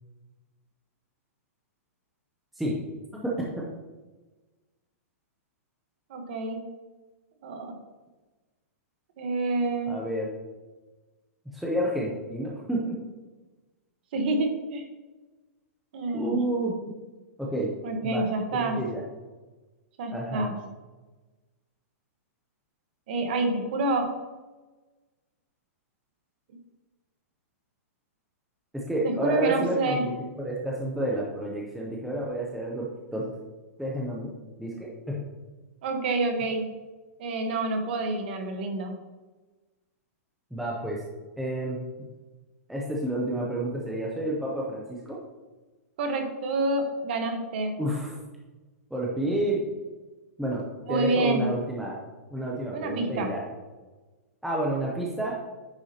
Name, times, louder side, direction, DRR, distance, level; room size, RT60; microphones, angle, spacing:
voice 1, 3.1-3.7 9.9-10.3 11.5-13.0 16.1-16.7 17.4-17.7 18.0-18.2 18.5-19.0 20.1-20.5 28.7-33.2 33.8-34.3 34.6-35.2 40.5-41.0 41.4-41.8 42.7-45.2 47.8-48.2 48.9-49.6 50.4-50.6 50.9-52.0 52.3-53.4 54.4-55.4, right 1 dB, ahead, -4 dB, 0.5 m, -30 dB
voice 2, 6.1-6.6 7.4-7.7 9.2-10.0 14.1-14.9 15.9-16.4 17.8-18.8 20.0-20.5 23.1-24.1 29.0-30.1 35.8-36.7 37.2-38.9 46.0-47.8 50.9-51.5 52.7-53.3, right 2 dB, 40° right, 5 dB, 1.2 m, -28 dB
9.6 x 5.9 x 2.8 m, 1.2 s
hypercardioid pair, 175°, 8 cm